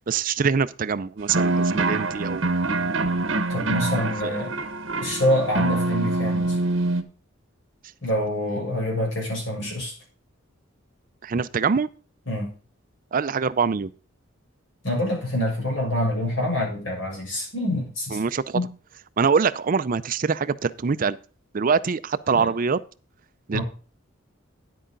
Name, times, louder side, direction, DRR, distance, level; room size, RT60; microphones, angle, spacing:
voice 1, 0.1-2.5 4.2-4.4 11.2-11.9 13.1-13.9 18.1-18.4 19.2-21.2 21.5-22.8 23.5-23.6, right 5 dB, 45° right, 0.4 m, -24 dB
sound 1, 1.3-7.0, right 2 dB, 70° right, 1.1 m, -25 dB
voice 2, 3.5-4.5 5.0-6.6 8.0-9.9 12.3-12.5 14.8-18.2 18.5-18.6 22.3-22.5 23.5-23.6, left 1 dB, 70° left, 6.8 m, -26 dB
10.5 x 8.5 x 3.8 m
head